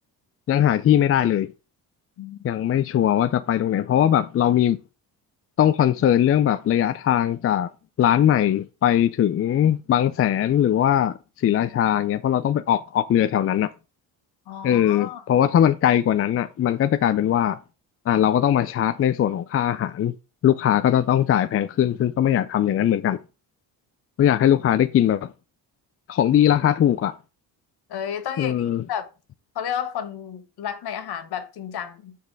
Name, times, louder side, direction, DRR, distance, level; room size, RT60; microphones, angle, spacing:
voice 1, 0.5-1.5 2.4-4.8 5.6-7.7 8.0-11.2 11.4-13.7 14.6-17.6 18.1-20.1 20.4-23.2 24.2-25.3 26.1-27.1 28.4-28.8, left 10 dB, 35° left, 0.4 m, -20 dB
voice 2, 14.5-15.2 27.9-29.1 29.5-32.2, left 9 dB, 65° left, 1.3 m, -32 dB
6.7 x 5.3 x 4.6 m
cardioid pair, 100°, 41 cm